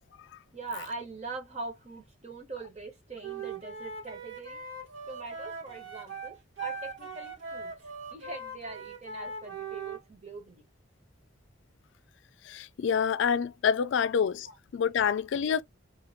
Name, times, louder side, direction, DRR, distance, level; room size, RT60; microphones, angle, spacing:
voice 1, 0.5-4.6 5.1-10.6 14.5-14.6, right 3 dB, 35° right, 1.1 m, -42 dB
Wind instrument woodwind instrument, 3.2-10.0, right 4 dB, 75° right, 1.6 m, -40 dB
voice 2, 12.4-14.5 14.7-15.6, left 7 dB, 65° left, 0.3 m, -27 dB
3.7 x 2.5 x 2.7 m
head